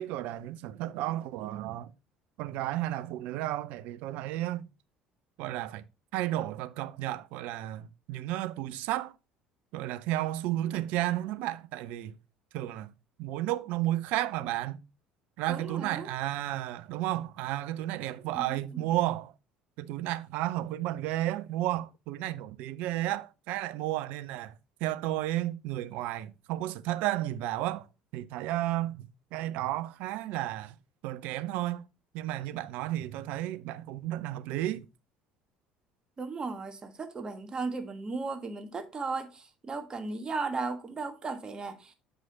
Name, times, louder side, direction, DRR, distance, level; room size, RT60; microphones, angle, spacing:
voice 1, 0.0-1.9 2.4-4.7 5.4-5.8 6.1-9.1 9.7-12.2 12.5-12.9 13.2-14.8 15.4-19.3 19.8-24.6 24.8-27.9 28.1-30.7 31.0-31.8 32.1-34.9, right 15 dB, 60° right, 0.5 m, -32 dB
voice 2, 15.5-16.1 18.2-18.9 36.2-41.9, right 4 dB, 25° right, 1.4 m, -36 dB
7.6 x 4.9 x 3.7 m
figure-of-eight pair, 60°, 3 cm